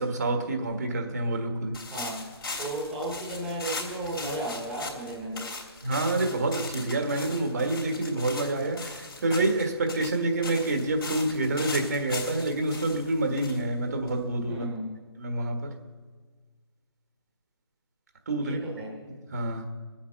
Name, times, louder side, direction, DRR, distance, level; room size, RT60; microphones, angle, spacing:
voice 1, 0.0-1.8 5.8-14.6 15.2-15.7 18.3-18.6 19.3-19.6, right 2 dB, 40° right, 5 dB, 1.5 m, -27 dB
sound 1, 1.7-14.5, left 3 dB, 60° left, 3.1 m, -39 dB
voice 2, 1.9-2.2 2.6-5.5 14.5-14.9 18.4-18.9, right 1 dB, 5° right, -4 dB, 1.3 m, -34 dB
20.0 x 8.7 x 6.6 m, 1.5 s
hypercardioid pair, 170°, 13 cm